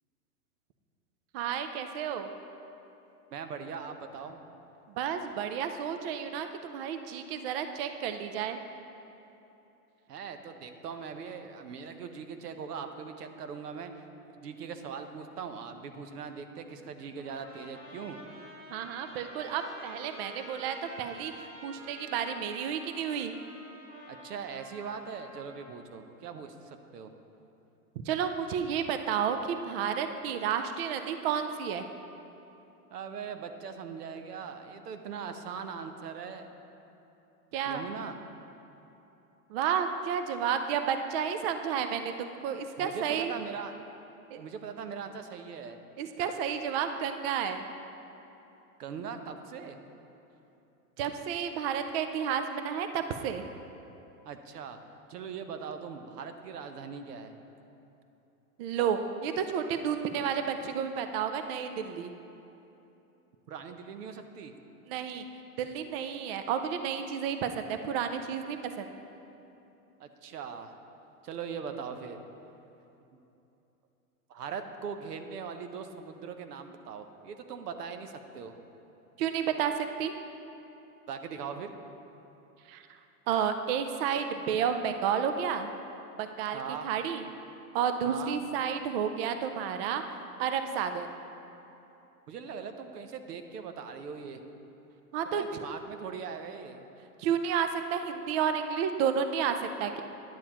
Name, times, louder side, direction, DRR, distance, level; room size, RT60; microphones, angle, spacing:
voice 1, 1.3-2.3 5.0-8.6 18.7-23.3 28.1-31.9 37.5-37.9 39.5-43.3 44.3-44.4 46.0-47.6 51.0-53.4 58.6-62.1 64.9-65.2 65.6-68.9 79.2-79.7 80.0-80.1 82.7-82.8 83.3-85.7 86.2-87.2 87.7-91.1 95.1-95.4 97.2-100.0, right 8 dB, 45° right, 8 dB, 0.4 m, -31 dB
voice 2, 3.3-4.4 10.1-18.2 24.1-27.2 32.9-36.5 37.7-38.2 42.8-43.7 44.4-45.8 48.8-49.8 54.2-54.8 55.1-57.4 63.5-64.5 70.0-70.7 71.2-72.2 73.1-73.2 74.3-78.5 81.1-81.7 86.5-86.9 88.0-88.4 92.3-94.4 95.2-96.8, right 6 dB, 85° right, 7 dB, 0.8 m, -40 dB
Trumpet, 17.2-25.8, equal, 25° right, 1.7 m, -49 dB
10.5 x 7.1 x 2.9 m, 2.9 s
hypercardioid pair, 120°, 46 cm